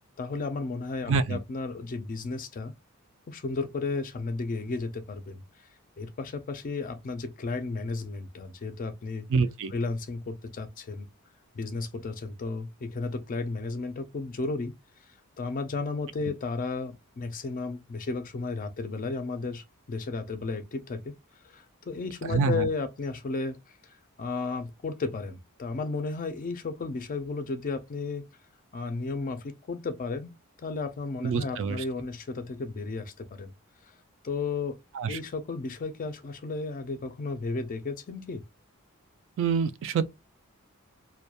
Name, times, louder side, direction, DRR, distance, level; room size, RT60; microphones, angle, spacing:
voice 1, 0.2-2.7 3.3-5.4 6.0-9.3 9.7-11.1 11.5-14.7 15.4-21.1 21.4-23.6 23.8-28.3 28.7-30.3 30.6-33.5 34.2-34.8 35.1-38.4, left 3 dB, 40° left, 0.4 m, -33 dB
voice 2, 1.1-1.4 9.3-9.7 22.3-22.7 31.2-31.8 34.9-35.2 39.4-40.1, right 5 dB, 60° right, 0.3 m, -26 dB
2.3 x 2.1 x 2.8 m
head